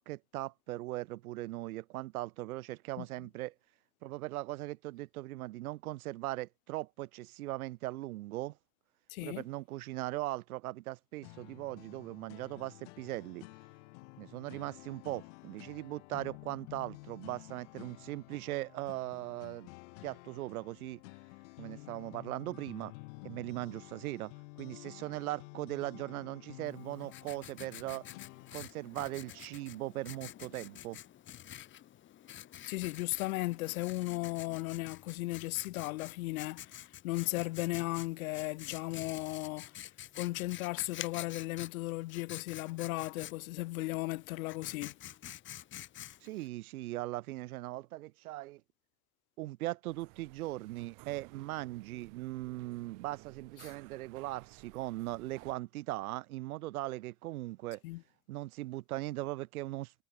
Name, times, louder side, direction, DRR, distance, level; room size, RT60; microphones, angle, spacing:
voice 1, 0.0-3.5 4.0-8.6 9.2-13.5 14.2-19.7 20.0-21.0 21.6-22.9 23.2-24.3 24.6-28.1 28.5-31.0 46.2-48.6 49.4-57.8 58.3-59.9, right 17 dB, 75° right, 2.6 m, -39 dB
voice 2, 9.1-9.4 32.7-39.7 40.2-44.9 53.6-53.7 57.8-58.0, left 20 dB, 70° left, 1.3 m, -36 dB
sound 1, 11.2-28.7, left 26 dB, 55° left, 4.7 m, -51 dB
Writing, 26.7-46.5, left 12 dB, 25° left, 6.8 m, -49 dB
sound 2, 49.9-55.5, right 31 dB, 45° right, 6.2 m, -56 dB
supercardioid pair, 165°, 43 cm